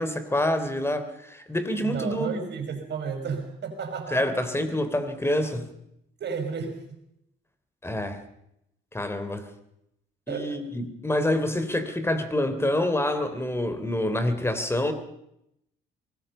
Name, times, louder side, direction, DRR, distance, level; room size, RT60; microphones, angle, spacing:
voice 1, 0.0-2.4 4.1-5.7 7.8-8.2 8.9-9.5 10.3-14.9, left 1 dB, 10° left, 9 dB, 3.3 m, -27 dB
voice 2, 1.8-4.2 6.2-7.0 10.3-10.6, right 5 dB, 60° right, 5 dB, 5.4 m, -33 dB
24.0 x 20.0 x 5.6 m, 0.79 s
cardioid pair, 90°, 20 cm